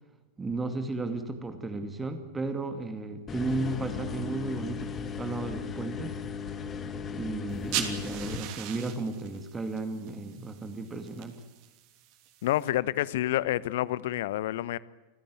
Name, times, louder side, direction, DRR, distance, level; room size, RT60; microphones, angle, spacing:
voice 1, 0.4-6.2 7.1-11.4, right 3 dB, 15° right, 2.3 m, -34 dB
sound 1, 3.3-8.4, left 6 dB, 25° left, 2.2 m, -37 dB
sound 2, 7.5-12.7, right 11 dB, 45° right, 3.0 m, -40 dB
voice 2, 12.4-14.8, left 14 dB, 55° left, 0.9 m, -28 dB
28.0 x 16.0 x 9.6 m
figure-of-eight pair, 90°, 0 cm